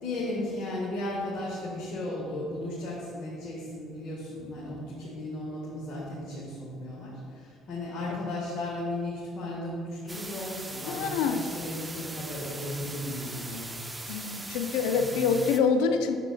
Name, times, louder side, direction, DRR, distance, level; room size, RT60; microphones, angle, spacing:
voice 1, 0.0-13.7 14.0-14.1 14.8-15.2, left 1 dB, 50° left, -6 dB, 1.6 m, -35 dB
sound 1, 10.1-15.6, right 2 dB, 15° right, 0.6 m, -40 dB
voice 2, 10.9-11.4 14.1-16.2, left 5 dB, 65° left, 8 dB, 0.5 m, -26 dB
9.7 x 6.9 x 2.3 m, 2.2 s
figure-of-eight pair, 55°, 0 cm